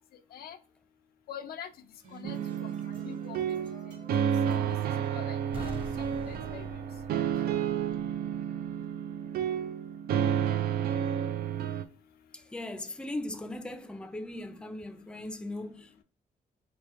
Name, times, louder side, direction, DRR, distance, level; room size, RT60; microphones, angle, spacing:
voice 1, 1.3-1.7 2.1-2.8 3.0-3.4 4.1-4.2 5.1-5.8 6.3-6.7, left 9 dB, 80° left, 0.5 m, -44 dB
sound 1, 1.7-6.0, right 2 dB, 60° right, 1.8 m, -52 dB
sound 2, 2.2-11.8, right 9 dB, 85° right, 0.4 m, -31 dB
sound 3, 5.5-8.4 8.7-8.8, right 2 dB, 35° right, 0.9 m, -44 dB
voice 2, 12.3-16.0, left 1 dB, 5° left, 0.4 m, -39 dB
3.3 x 2.6 x 4.4 m
cardioid pair, 95°, 15 cm